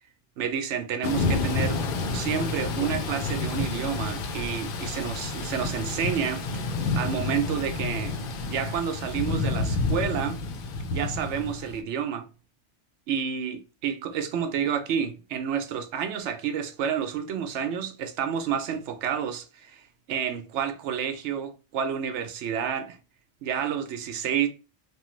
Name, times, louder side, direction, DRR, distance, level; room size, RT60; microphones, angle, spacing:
voice 1, 0.4-1.8 2.1-6.4 6.9-8.2 8.5-10.4 10.9-12.3 13.1-19.8 20.1-23.0 23.4-24.5, right 8 dB, 85° right, 0.9 m, -29 dB
Thunder / Rain, 1.0-11.8, left 3 dB, 60° left, 0.7 m, -29 dB
3.0 x 2.2 x 3.0 m
omnidirectional pair, 1.2 m